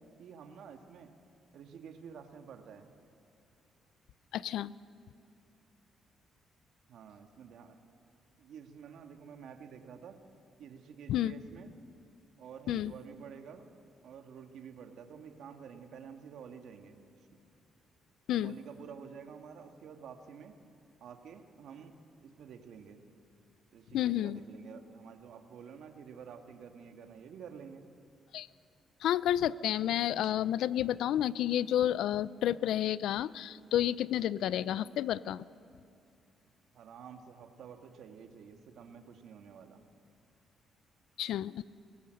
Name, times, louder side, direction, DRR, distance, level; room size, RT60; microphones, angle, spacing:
voice 1, 0.2-1.1 1.5-2.9 6.9-7.8 8.4-10.2 10.6-11.7 12.4-13.6 14.0-17.0 18.4-20.5 21.0-21.9 22.2-23.0 23.7-27.9 36.7-39.8, right 7 dB, 75° right, 6 dB, 1.7 m, -50 dB
voice 2, 4.3-4.7 11.1-11.3 12.7-12.9 18.3-18.5 23.9-24.4 28.3-28.5 29.0-35.5 41.2-41.6, left 11 dB, 80° left, 19 dB, 0.4 m, -30 dB
22.5 x 18.0 x 6.4 m, 2.5 s
cardioid pair, 90°, 0 cm